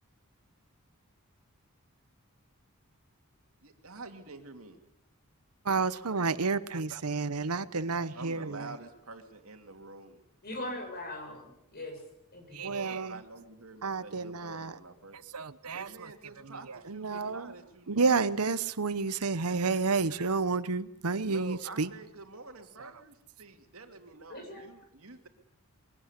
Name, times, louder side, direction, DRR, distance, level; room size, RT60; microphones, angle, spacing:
voice 1, 3.6-4.8 8.1-10.2 12.9-15.2 15.7-18.0 21.2-25.3, right 3 dB, 70° right, 6 dB, 2.8 m, -47 dB
voice 2, 5.6-8.8 12.5-13.2 13.8-14.7 15.1-16.1 16.4-17.5 17.9-21.9, right 4 dB, 90° right, 16 dB, 1.0 m, -30 dB
voice 3, 10.4-12.0 12.3-12.8 24.3-24.6, left 1 dB, 45° left, 3 dB, 7.3 m, -40 dB
23.0 x 17.5 x 9.9 m, 0.78 s
head